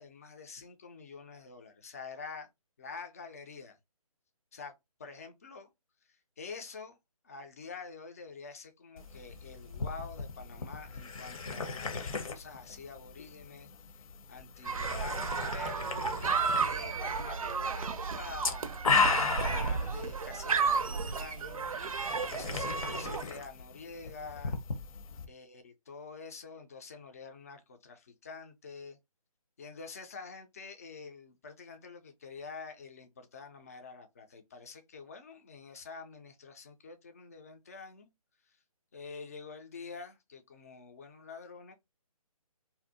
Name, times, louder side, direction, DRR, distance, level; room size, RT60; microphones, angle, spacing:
voice 1, 0.0-2.5 2.8-3.8 4.5-4.7 5.0-5.7 6.1-7.0 7.2-13.7 14.3-15.9 16.6-21.8 22.3-24.6 25.3-29.0 29.6-38.1 38.9-41.7, left 4 dB, 25° left, 0.3 m, -47 dB
sound 1, 9.0-25.3, left 4 dB, 65° left, 0.6 m, -36 dB
sound 2, 14.7-23.2, right 5 dB, 65° right, 0.4 m, -33 dB
2.5 x 2.0 x 2.6 m
figure-of-eight pair, 145°, 19 cm